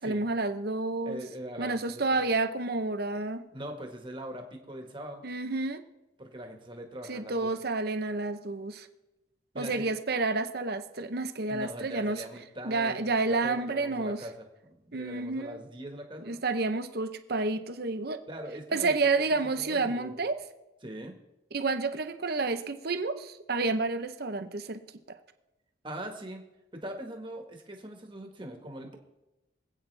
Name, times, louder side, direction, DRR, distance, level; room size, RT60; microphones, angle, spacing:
voice 1, 0.0-1.2 1.6-3.4 5.2-5.8 7.1-8.9 9.6-12.2 12.6-14.2 14.9-15.6 16.2-18.2 18.7-20.4 21.5-24.8, right 3 dB, 55° right, 9 dB, 0.8 m, -30 dB
voice 2, 1.0-2.0 3.5-5.2 6.2-7.5 9.5-9.9 11.5-16.4 18.3-20.1 20.8-21.2 25.8-26.5 26.7-29.0, right 1 dB, 25° right, 3 dB, 1.6 m, -41 dB
25.0 x 8.6 x 3.4 m, 0.99 s
head